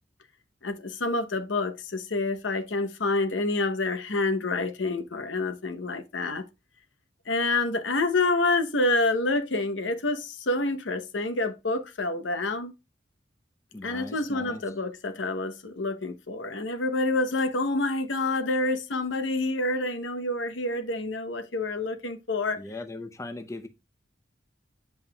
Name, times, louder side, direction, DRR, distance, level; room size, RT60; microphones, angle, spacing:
voice 1, 0.6-6.4 7.3-12.7 13.8-22.6, left 2 dB, 70° left, 0.9 m, -28 dB
voice 2, 13.7-14.6 22.6-23.7, left 2 dB, 15° left, 0.6 m, -39 dB
7.7 x 5.5 x 2.3 m
head